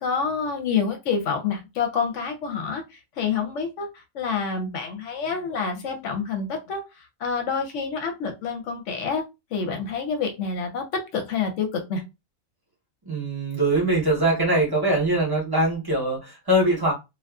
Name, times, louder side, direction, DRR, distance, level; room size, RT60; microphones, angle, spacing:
voice 1, 0.0-9.2 9.5-12.0, left 5 dB, 70° left, 0.8 m, -28 dB
voice 2, 13.0-16.9, right 1 dB, 20° right, 0.7 m, -22 dB
2.5 x 2.2 x 2.3 m
omnidirectional pair, 1.4 m